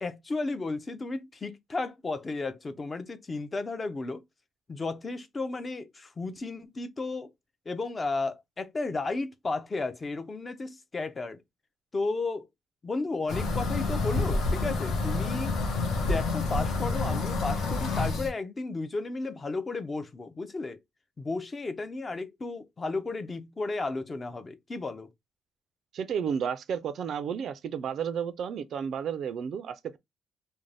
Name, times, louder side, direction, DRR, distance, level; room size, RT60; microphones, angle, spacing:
voice 1, 0.0-4.2 4.7-7.3 7.7-11.4 11.9-12.5 12.8-15.5 16.0-20.8 21.2-25.1, left 3 dB, 25° left, 0.4 m, -33 dB
sound 1, 13.3-18.3, left 3 dB, 70° left, 0.8 m, -28 dB
voice 2, 25.9-30.0, right 7 dB, 55° right, 0.3 m, -32 dB
2.5 x 2.1 x 3.1 m
cardioid pair, 140°, 0 cm